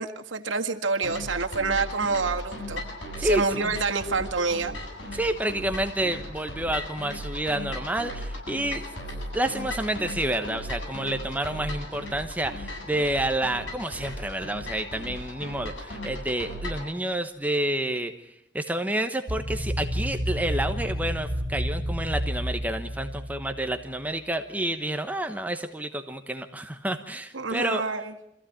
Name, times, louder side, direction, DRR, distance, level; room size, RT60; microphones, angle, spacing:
voice 1, 0.0-2.8 3.2-4.7 27.3-28.1, right 4 dB, 80° right, 4 dB, 1.9 m, -27 dB
sound 1, 1.0-16.9, left 1 dB, 75° left, 7.9 m, -37 dB
voice 2, 3.2-3.7 5.1-8.8 9.3-18.3 18.5-27.8, right 1 dB, 10° right, 6 dB, 1.1 m, -29 dB
sound 2, 19.3-23.9, equal, 40° right, 3.2 m, -30 dB
26.0 x 15.5 x 8.7 m, 0.81 s
head